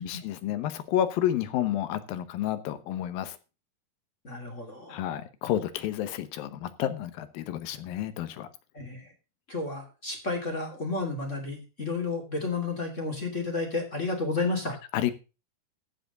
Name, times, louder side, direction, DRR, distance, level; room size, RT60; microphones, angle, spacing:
voice 1, 0.0-3.4 4.9-8.5 14.9-15.1, left 11 dB, 70° left, 12 dB, 2.5 m, -30 dB
voice 2, 4.2-5.0 8.7-9.1 9.5-14.7, left 3 dB, 25° left, 2 dB, 2.0 m, -31 dB
15.0 x 5.0 x 6.6 m, 0.32 s
omnidirectional pair, 4.7 m